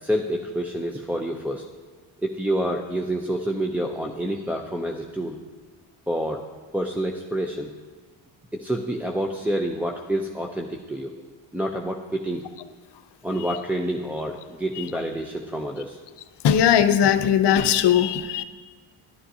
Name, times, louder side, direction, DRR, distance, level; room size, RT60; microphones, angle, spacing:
voice 1, 0.0-1.7 2.2-5.4 6.1-6.4 6.7-7.7 8.5-11.1 11.5-12.4 13.2-16.0, right 1 dB, 5° right, 0.5 m, -28 dB
voice 2, 16.4-18.4, left 9 dB, 55° left, 0.7 m, -19 dB
11.0 x 11.0 x 2.7 m
cardioid pair, 80°, 50 cm